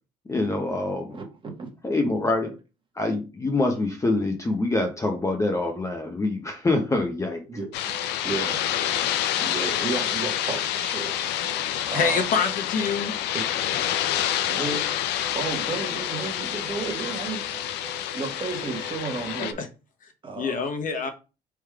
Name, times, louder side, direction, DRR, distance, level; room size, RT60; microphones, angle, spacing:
voice 1, 0.3-1.2 1.8-2.5 3.0-7.4, left 2 dB, 20° left, 0.8 m, -25 dB
voice 2, 1.1-1.7 6.9-7.0 7.5-8.0 8.2-8.7 9.4-11.2 11.9-12.3 13.3-13.5 13.7-14.2 14.5-14.9 15.3-17.4 18.1-19.6 20.2-20.6, right 4 dB, 30° right, 1.4 m, -33 dB
sound 1, 7.7-19.5, left 11 dB, 85° left, 0.5 m, -28 dB
sound 2, 7.9-8.1 8.9-9.1 9.9-10.1 10.9-11.1 11.4-11.6 11.9-12.1 12.4-12.6 12.8-13.0 13.3-13.5 13.8-14.0 14.3-14.5 14.7-14.9 15.2-19.4, equal, 45° right, 2.0 m, -44 dB
voice 3, 11.9-13.1 19.4-19.7 20.4-21.1, left 5 dB, 50° left, 0.9 m, -26 dB
3.5 x 3.0 x 4.8 m
cardioid pair, 110°, 17 cm